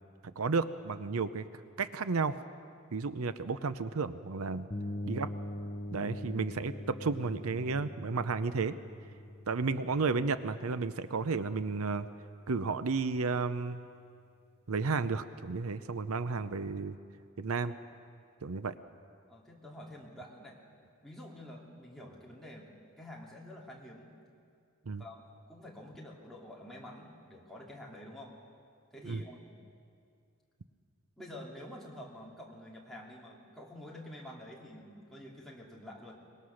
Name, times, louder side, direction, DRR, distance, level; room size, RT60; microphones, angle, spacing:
voice 1, 0.4-1.4 1.8-2.4 2.9-4.7 5.0-5.3 5.9-8.7 9.5-12.1 12.5-13.8 14.7-17.0 17.4-17.7 18.4-18.7 24.9-25.0 29.0-29.2, right 4 dB, 85° right, 13 dB, 0.7 m, -32 dB
sound 1, 4.7-12.4, left 1 dB, 30° left, 1.0 m, -43 dB
voice 2, 19.3-20.6 21.0-24.1 25.0-28.3 28.9-29.7 31.2-36.2, left 1 dB, ahead, -4 dB, 2.7 m, -48 dB
23.5 x 20.5 x 6.4 m, 2.4 s
head